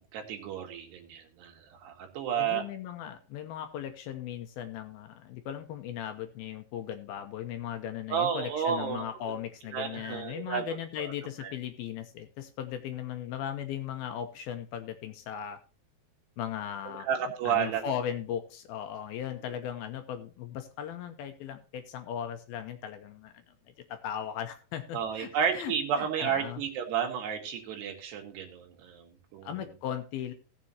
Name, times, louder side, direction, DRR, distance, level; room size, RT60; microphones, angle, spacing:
voice 1, 0.0-2.6 8.1-9.0 9.7-10.7 11.0-11.1 11.4-11.5 16.9-17.9 24.9-29.5, right 8 dB, 75° right, 2 dB, 3.8 m, -32 dB
voice 2, 2.4-15.6 16.4-17.1 17.4-23.4 23.9-25.3 25.5-26.6 29.4-30.3, left 9 dB, 75° left, 7 dB, 2.4 m, -37 dB
17.5 x 7.5 x 2.8 m, 0.37 s
omnidirectional pair, 4.9 m